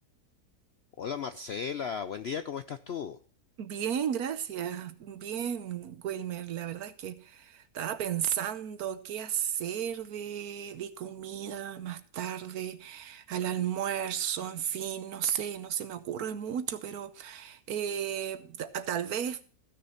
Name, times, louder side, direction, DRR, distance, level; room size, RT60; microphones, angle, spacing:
voice 1, 1.0-3.2, left 7 dB, 65° left, 0.6 m, -35 dB
voice 2, 3.6-19.4, right 9 dB, 70° right, 1.3 m, -34 dB
15.0 x 6.6 x 5.7 m
omnidirectional pair, 1.7 m